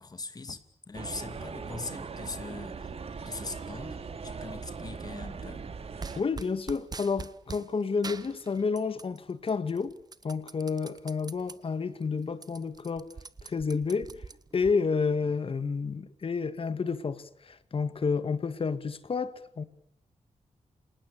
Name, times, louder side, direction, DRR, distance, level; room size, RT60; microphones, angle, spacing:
voice 1, 0.0-2.9 3.2-4.0 4.2-5.6, left 4 dB, 30° left, 2.7 m, -41 dB
sound 1, 0.9-6.2, right 5 dB, 55° right, 2.6 m, -40 dB
sound 2, 6.0-7.7 8.0-9.2 9.5-11.6 12.0-12.1 12.3-14.7, right 4 dB, 30° right, 1.2 m, -43 dB
voice 2, 6.2-10.0 10.2-13.1 13.4-14.1 14.5-19.6, left 5 dB, 45° left, 2.1 m, -30 dB
29.0 x 27.0 x 7.1 m
wide cardioid pair, 170°, 13 cm